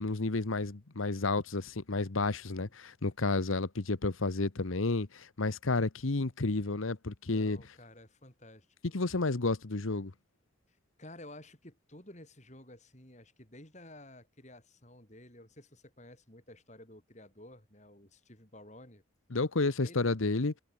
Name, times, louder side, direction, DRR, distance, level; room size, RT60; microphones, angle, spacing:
voice 1, 0.0-7.6 8.9-10.1 19.3-20.5, left 3 dB, 80° left, 1.1 m, -31 dB
voice 2, 7.3-8.9 10.7-19.0 19.8-20.0, left 1 dB, 35° left, 5.9 m, -53 dB
head